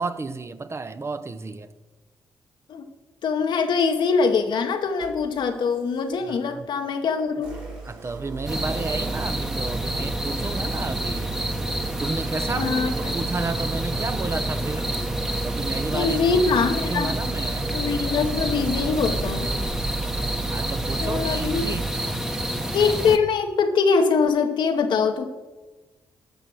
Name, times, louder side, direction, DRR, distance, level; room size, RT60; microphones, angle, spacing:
voice 1, 0.0-1.7 6.3-6.7 7.8-11.3 12.0-14.9 15.4-17.7 20.5-22.2, right 3 dB, 35° right, 0.7 m, -32 dB
voice 2, 3.2-7.6 12.6-13.2 15.9-17.1 17.7-19.5 21.0-21.6 22.7-25.2, left 5 dB, 70° left, 1.1 m, -23 dB
sound 1, 4.4-4.5 5.0-6.6 7.3-21.9, right 4 dB, 80° right, 2.8 m, -34 dB
sound 2, 8.5-23.2, right 1 dB, 5° right, 1.0 m, -28 dB
12.0 x 6.1 x 6.2 m
supercardioid pair, 55°, 8 cm